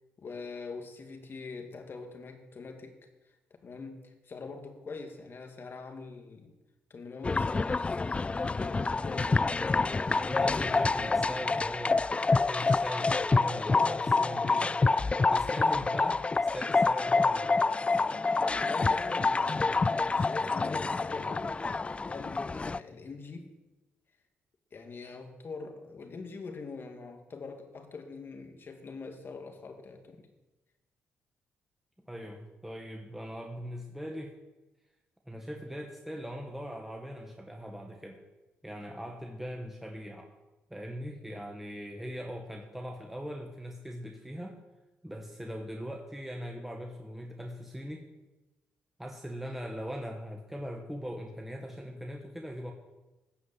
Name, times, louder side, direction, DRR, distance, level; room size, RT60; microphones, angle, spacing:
voice 1, 0.2-3.0 3.6-6.6 6.9-8.0 8.5-9.6 18.6-21.5 22.0-23.5 24.7-30.3, left 4 dB, 50° left, 5 dB, 2.1 m, -43 dB
sound 1, 7.2-22.8, left 3 dB, 25° left, 0.3 m, -27 dB
voice 2, 10.2-14.7 15.3-17.7 32.1-34.3 35.2-38.2 38.6-40.3 40.7-44.6 45.0-48.0 49.0-52.7, equal, 5° right, 1 dB, 1.6 m, -40 dB
14.5 x 5.1 x 8.2 m, 1.1 s
supercardioid pair, 60°, 5 cm